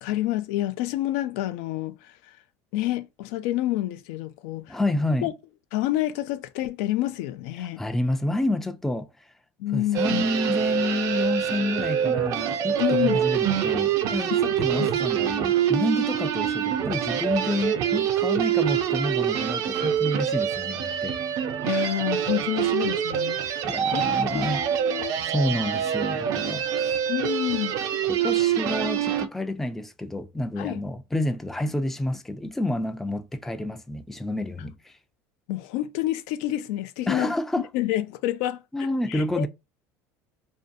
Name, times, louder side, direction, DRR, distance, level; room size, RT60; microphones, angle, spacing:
voice 1, 0.0-2.1 2.7-4.8 5.2-5.3 5.7-7.8 9.6-10.2 12.8-13.2 14.3-14.4 14.8-14.9 21.6-25.1 27.1-28.1 30.6-30.8 35.5-37.3 37.7-39.5, left 14 dB, 80° left, 0.4 m, -28 dB
voice 2, 4.7-5.3 7.6-9.1 9.7-21.2 23.6-24.6 24.9-25.0 25.3-27.0 28.1-34.9 37.1-37.7 38.7-39.5, left 1 dB, 5° left, 0.3 m, -29 dB
sound 1, 9.9-29.3, right 9 dB, 60° right, 0.4 m, -25 dB
2.5 x 2.2 x 2.6 m
supercardioid pair, 120°, 7 cm